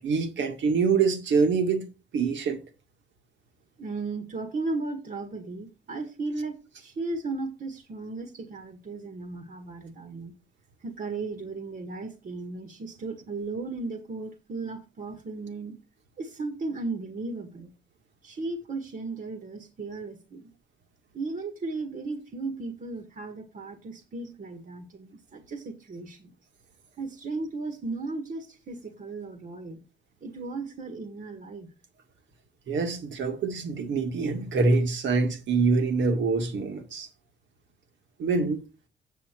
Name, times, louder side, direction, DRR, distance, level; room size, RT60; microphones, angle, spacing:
voice 1, 0.0-1.8 2.1-2.6 32.7-37.1 38.2-38.6, right 4 dB, 70° right, 2.1 m, -25 dB
voice 2, 3.8-10.3 10.8-15.8 16.2-17.7 18.2-20.5 21.1-26.3 27.0-29.8 30.2-31.7, right 3 dB, 45° right, 1.7 m, -35 dB
8.6 x 7.2 x 4.5 m
cardioid pair, 90°, 20 cm